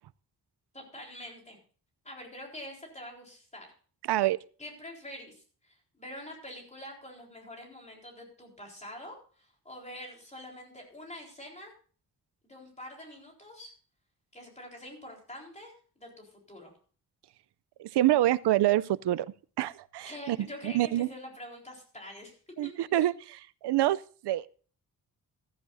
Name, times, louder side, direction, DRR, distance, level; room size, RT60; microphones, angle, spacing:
voice 1, 0.7-1.6 2.0-3.7 4.6-11.7 12.4-13.7 14.3-16.7 20.1-22.7, left 1 dB, 15° left, 0 dB, 4.0 m, -46 dB
voice 2, 17.8-19.3 19.6-21.1 22.6-24.5, right 14 dB, 85° right, 17 dB, 0.5 m, -27 dB
14.5 x 14.0 x 2.6 m, 0.41 s
wide cardioid pair, 165°, 39 cm